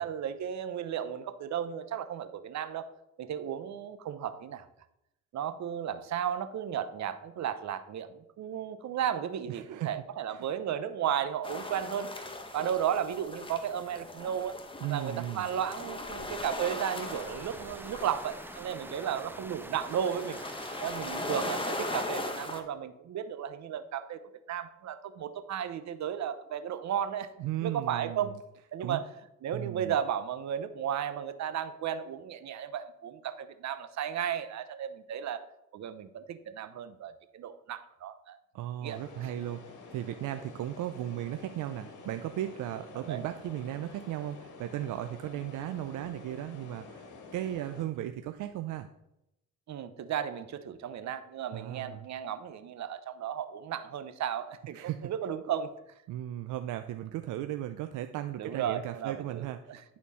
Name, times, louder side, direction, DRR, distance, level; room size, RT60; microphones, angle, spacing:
voice 1, 0.0-2.9 3.2-4.7 5.3-12.1 12.5-14.6 14.9-20.4 20.8-24.2 24.5-27.3 27.6-28.3 28.7-29.1 29.4-35.4 35.7-38.4 38.8-39.0 43.0-43.2 49.7-54.8 55.0-55.7 58.4-59.8, right 9 dB, 65° right, 11 dB, 0.9 m, -34 dB
voice 2, 9.5-9.9 10.3-10.4 14.8-15.5 27.4-28.4 28.8-29.0 29.5-30.0 38.5-48.9 51.5-52.1 54.7-55.1 56.1-59.8, right 13 dB, 85° right, 9 dB, 0.6 m, -36 dB
sound 1, 11.4-22.6, left 2 dB, 15° left, 1.4 m, -39 dB
sound 2, 16.9-22.1, right 2 dB, 5° right, 0.4 m, -46 dB
sound 3, 38.8-47.8, left 4 dB, 80° left, 2.0 m, -49 dB
11.5 x 4.4 x 5.5 m, 0.84 s
cardioid pair, 90°, 30 cm